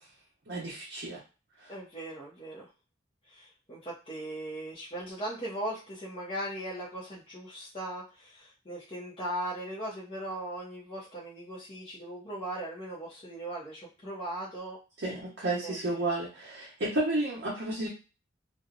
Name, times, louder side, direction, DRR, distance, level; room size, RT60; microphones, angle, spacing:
voice 1, 0.5-1.2 1.6-1.7 15.0-17.9, right 2 dB, 70° right, -6 dB, 0.8 m, -32 dB
voice 2, 1.7-2.7 3.3-14.8 15.6-15.8, right 1 dB, 30° left, -7 dB, 0.6 m, -38 dB
2.6 x 2.0 x 2.4 m, 0.32 s
head